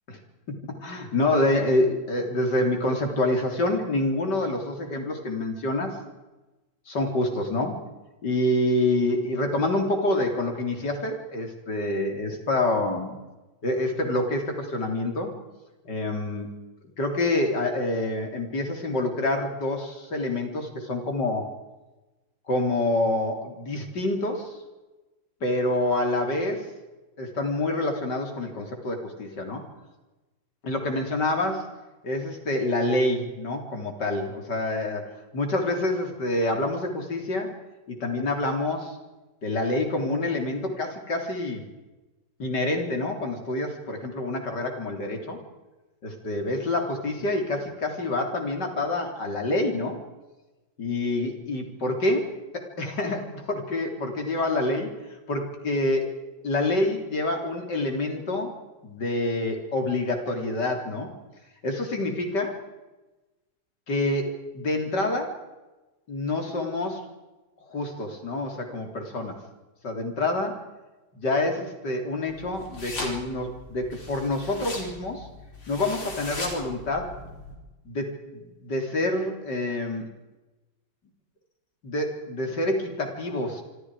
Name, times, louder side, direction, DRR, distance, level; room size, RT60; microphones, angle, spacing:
voice 1, 0.6-6.0 6.9-7.8 8.2-13.2 13.6-15.3 15.8-16.5 17.0-21.5 22.5-24.5 25.4-26.7 27.2-29.6 30.6-31.7 32.0-37.5 37.9-39.0 39.4-41.6 42.4-45.4 46.0-50.0 50.8-54.9 55.3-56.1 56.4-58.5 58.8-61.1 61.6-62.5 63.9-65.4 66.1-67.0 67.7-69.4 69.8-70.6 71.1-75.3 75.7-77.1 77.8-80.1 81.8-83.6, left 2 dB, 65° left, 3 dB, 4.2 m, -27 dB
sound 1, 72.3-77.6, left 2 dB, 80° left, 5.4 m, -38 dB
26.5 x 25.0 x 5.0 m, 1.1 s
omnidirectional pair, 2.0 m